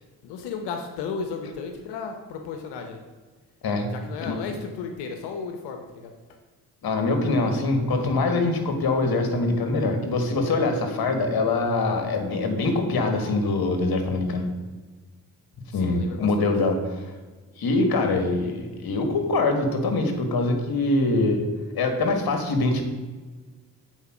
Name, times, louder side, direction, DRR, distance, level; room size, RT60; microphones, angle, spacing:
voice 1, 0.2-3.0 3.9-6.1 15.7-16.5, left 5 dB, 90° left, 5 dB, 0.8 m, -34 dB
voice 2, 6.8-14.5 15.7-17.1 17.6-21.5 21.8-22.8, left 2 dB, 65° left, 5 dB, 1.6 m, -24 dB
8.2 x 4.4 x 5.9 m, 1.3 s
supercardioid pair, 50°, 39 cm